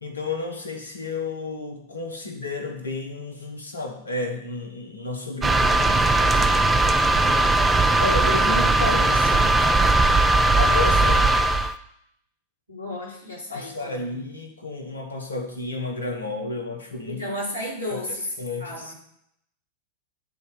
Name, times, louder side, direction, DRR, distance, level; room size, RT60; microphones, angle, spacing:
voice 1, 0.0-6.7 8.0-10.0 10.6-11.3 13.5-17.2 17.9-18.9, left 3 dB, 75° left, 4 dB, 1.2 m, -32 dB
sound 1, 5.4-11.7, right 2 dB, 15° right, 0.4 m, -19 dB
voice 2, 12.7-14.0 17.1-18.3 18.6-18.9, left 1 dB, 90° right, -5 dB, 2.9 m, -33 dB
9.8 x 4.1 x 5.3 m, 0.72 s
figure-of-eight pair, 90°, 0 cm